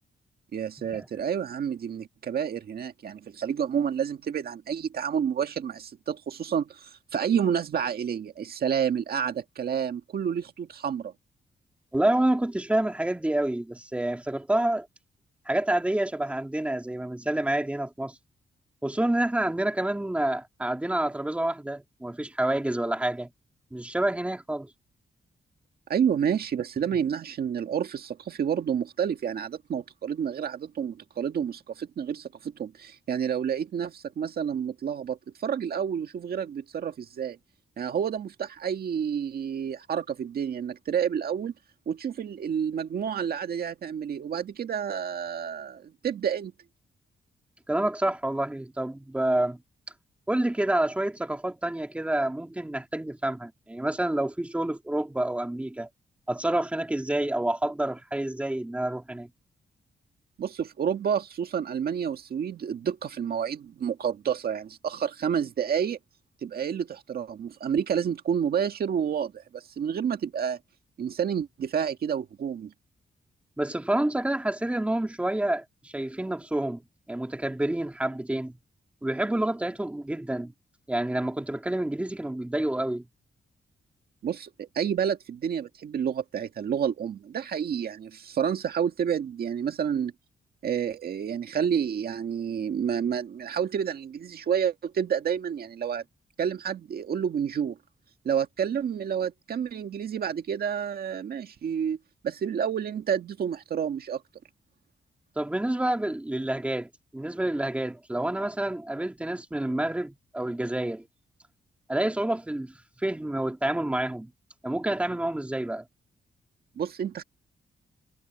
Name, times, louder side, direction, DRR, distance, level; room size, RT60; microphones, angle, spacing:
voice 1, 0.5-11.1 25.9-37.4 37.8-41.5 41.8-46.5 60.4-66.0 66.4-70.6 71.0-72.7 84.2-90.1 90.6-96.0 96.4-97.8 98.2-102.0 102.2-104.2 116.8-117.2, right 8 dB, 60° right, 1.8 m, -29 dB
voice 2, 11.9-14.9 15.5-18.2 18.8-23.3 23.7-24.7 47.7-49.6 50.3-55.9 56.3-59.3 73.6-76.8 77.1-78.5 79.0-80.5 80.9-83.1 105.4-111.1 111.9-112.7 113.0-114.3 114.6-115.9, right 1 dB, 5° right, 2.5 m, -28 dB
wide cardioid pair, 165°, 17 cm